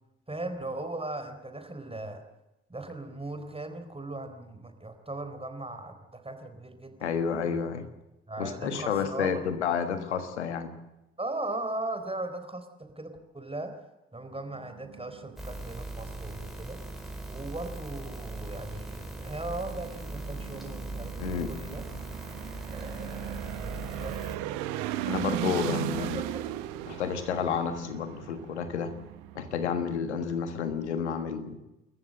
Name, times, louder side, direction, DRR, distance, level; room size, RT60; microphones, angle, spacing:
voice 1, 0.3-2.2 2.7-7.1 8.3-9.4 11.2-13.8 14.1-16.8 17.3-21.8 22.7-24.2 26.0-26.1 26.3-26.5, right 2 dB, 15° right, 7 dB, 4.0 m, -38 dB
voice 2, 7.0-7.9 8.4-10.7 21.2-21.5 25.1-26.2 26.9-28.9 29.3-31.6, left 7 dB, 85° left, 9 dB, 1.5 m, -30 dB
sound 1, 14.5-30.9, right 12 dB, 70° right, 1.2 m, -38 dB
sound 2, 15.4-24.4, right 2 dB, ahead, 5.1 m, -40 dB
29.5 x 14.0 x 7.8 m, 0.97 s
figure-of-eight pair, 45°, 33 cm